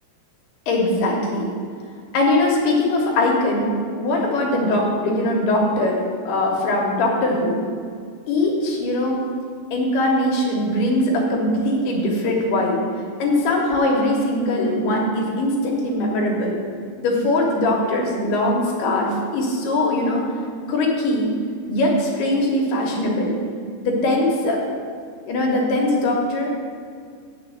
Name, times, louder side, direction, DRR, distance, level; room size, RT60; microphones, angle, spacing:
voice 1, 0.7-1.5 2.1-6.0 6.3-7.6 8.3-9.2 9.7-12.8 13.2-16.6 17.0-20.2 20.7-21.3 21.7-23.3 23.8-24.6 25.3-26.5, left 1 dB, 70° left, -1 dB, 3.0 m, -21 dB
7.8 x 7.1 x 7.5 m, 2.2 s
omnidirectional pair, 5.0 m